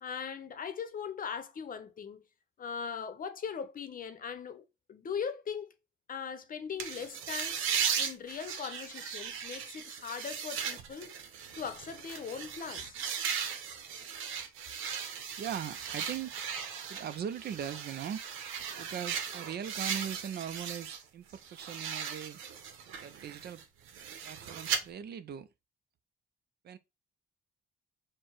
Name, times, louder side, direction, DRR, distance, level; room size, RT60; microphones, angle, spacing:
voice 1, 0.0-2.2 2.6-4.6 4.9-5.7 6.1-7.6 8.0-11.2 11.6-13.0, left 6 dB, 45° left, 0.7 m, -39 dB
sound 1, 6.8-21.0 21.3-24.8, right 7 dB, 90° right, 0.7 m, -37 dB
voice 2, 15.4-16.3 16.9-18.2 18.8-22.4 23.0-23.6 24.2-25.5 26.6-26.8, right 9 dB, 55° right, 0.5 m, -39 dB
4.5 x 2.1 x 4.4 m
cardioid pair, 90°, 20 cm